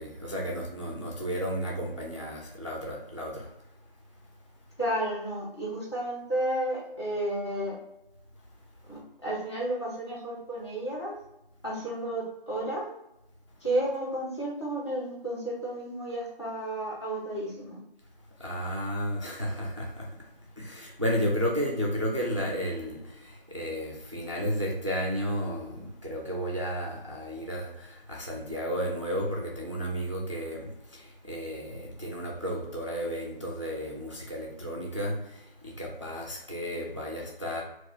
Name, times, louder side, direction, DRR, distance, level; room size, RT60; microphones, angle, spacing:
voice 1, 0.0-3.5 18.4-20.3 20.6-37.6, equal, 35° right, -2 dB, 0.4 m, -33 dB
voice 2, 4.8-7.8 8.9-11.1 11.6-12.9 13.6-17.8, right 1 dB, 30° left, -6 dB, 0.8 m, -32 dB
2.7 x 2.3 x 3.6 m, 0.89 s
figure-of-eight pair, 165°, 29 cm